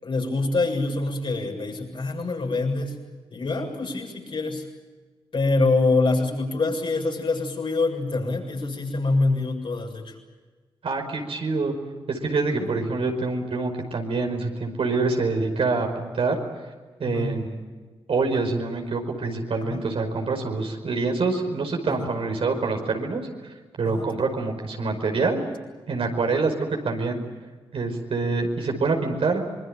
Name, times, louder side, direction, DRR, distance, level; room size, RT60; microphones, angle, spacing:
voice 1, 0.0-2.9 3.3-4.6 5.3-10.1 12.6-12.7 17.0-17.4 19.7-19.8 22.0-22.1 23.8-24.0, left 3 dB, 60° left, 1 dB, 7.3 m, -25 dB
voice 2, 10.8-11.7 12.1-16.4 17.0-17.6 18.1-23.2 23.8-25.4 25.9-27.2 27.7-29.4, right 3 dB, 70° right, 3 dB, 5.2 m, -26 dB
25.5 x 22.0 x 9.1 m, 1.4 s
cardioid pair, 50°, 10 cm